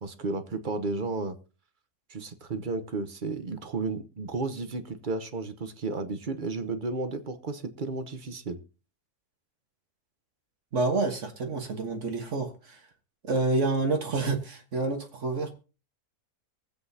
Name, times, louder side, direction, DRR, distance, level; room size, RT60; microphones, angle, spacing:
voice 1, 0.0-1.4 2.1-8.6, right 3 dB, 40° right, 10 dB, 1.0 m, -33 dB
voice 2, 10.7-12.8 13.2-15.5, right 3 dB, 55° right, 5 dB, 1.7 m, -28 dB
23.0 x 7.9 x 2.8 m, 0.34 s
omnidirectional pair, 1.6 m